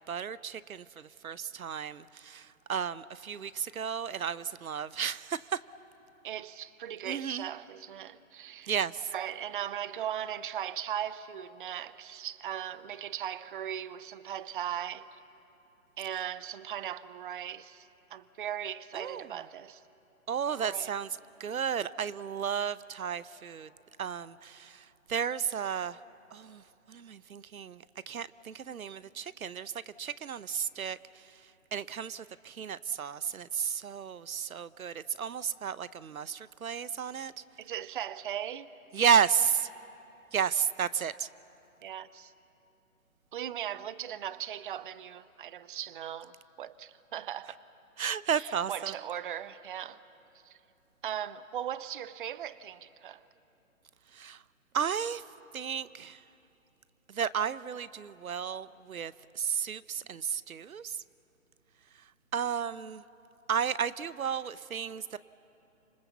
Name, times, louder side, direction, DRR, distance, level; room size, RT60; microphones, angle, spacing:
voice 1, 0.1-5.6 7.0-7.5 8.7-9.1 18.9-19.3 20.3-21.1 21.4-23.7 24.0-26.0 26.3-26.6 26.9-29.7 30.0-31.0 31.7-37.3 38.9-39.7 40.3-41.3 48.0-48.9 54.1-54.4 54.7-55.2 55.5-56.2 57.1-61.0 62.3-63.0 63.5-65.2, right 7 dB, 80° right, 0.8 m, -33 dB
voice 2, 6.2-8.7 9.1-15.2 16.0-19.8 20.6-20.9 37.6-38.7 41.8-42.3 43.3-47.6 48.3-50.0 50.4-50.6 51.0-53.3, right 10 dB, 40° right, 0.6 m, -38 dB
29.0 x 26.5 x 7.2 m
figure-of-eight pair, 140°, 42 cm